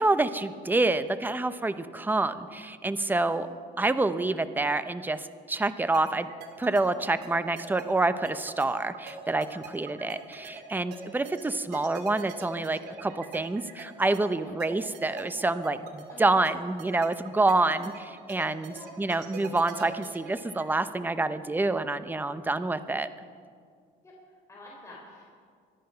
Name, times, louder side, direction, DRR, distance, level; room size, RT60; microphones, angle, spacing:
voice 1, 0.0-3.5 3.8-6.3 6.6-17.9 18.3-23.1, right 2 dB, 10° right, 12 dB, 0.7 m, -27 dB
sound 1, 5.9-20.7, right 6 dB, 75° right, 2.5 m, -43 dB
voice 2, 24.0-25.3, left 2 dB, 15° left, -4 dB, 4.1 m, -49 dB
24.5 x 10.0 x 5.7 m, 2.1 s
cardioid pair, 110°, 17 cm